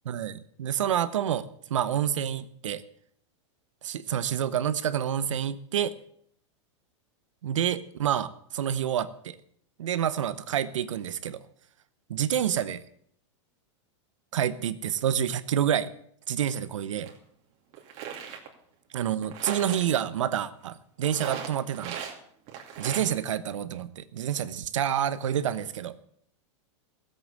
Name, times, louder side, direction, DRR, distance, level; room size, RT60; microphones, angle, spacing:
voice 1, 0.1-2.8 3.8-5.9 7.4-9.4 9.8-11.4 12.1-12.8 14.3-15.9 16.3-17.1 18.9-22.0 22.8-25.9, right 9 dB, 85° right, 14 dB, 1.0 m, -28 dB
sound 1, 17.1-17.2 17.7-18.5 19.2-19.9 21.0-22.2 22.5-23.1, right 8 dB, 45° right, 2.7 m, -37 dB
15.0 x 8.0 x 7.3 m, 0.65 s
hypercardioid pair, 125°, 16 cm